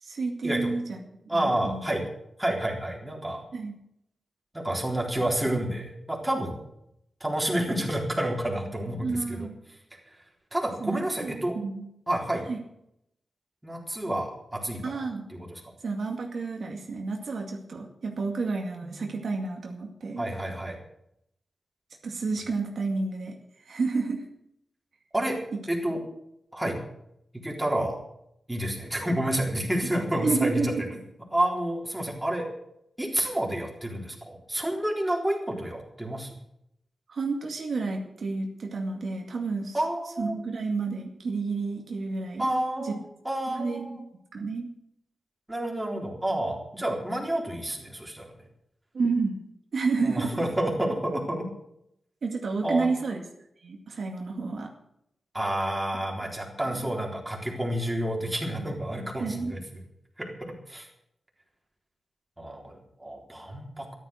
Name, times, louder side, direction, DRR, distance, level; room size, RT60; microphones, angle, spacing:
voice 1, 0.0-1.0 1.3-1.8 3.5-3.7 9.0-9.6 10.8-11.9 12.5-12.6 14.8-15.3 15.8-20.2 22.0-23.4 23.7-24.2 25.5-25.6 30.2-30.8 37.1-39.8 40.2-42.5 42.8-43.0 43.5-44.0 44.3-44.7 48.9-49.4 49.7-50.3 52.2-53.2 53.6-54.7 56.7-56.9 59.2-59.5, right 4 dB, 70° right, 1 dB, 2.2 m, -30 dB
voice 2, 1.3-2.0 2.4-3.4 4.5-6.6 7.2-9.5 10.1-10.2 10.5-11.6 12.1-12.4 13.6-15.0 15.3-15.6 20.2-20.8 25.1-25.4 25.7-26.0 26.5-26.8 27.3-28.0 28.5-30.7 31.3-32.5 33.0-36.3 39.7-40.4 42.4-44.0 45.5-48.4 50.0-51.5 52.6-52.9 55.3-59.6 60.2-60.3 60.7-60.9 62.4-63.9, right 1 dB, 10° right, -1 dB, 3.8 m, -29 dB
13.5 x 12.0 x 6.4 m, 0.77 s
wide cardioid pair, 120°, 0 cm